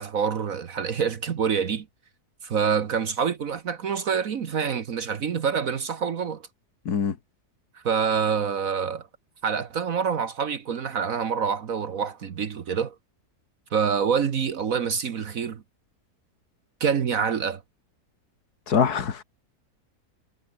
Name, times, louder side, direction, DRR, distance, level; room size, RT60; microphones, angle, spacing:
voice 1, 0.0-1.9 2.4-6.4 7.7-9.0 9.4-12.9 13.7-15.6 16.8-17.6, right 6 dB, 60° right, 1.6 m, -26 dB
voice 2, 18.7-19.2, left 6 dB, 80° left, 2.3 m, -23 dB
omnidirectional pair, 1.6 m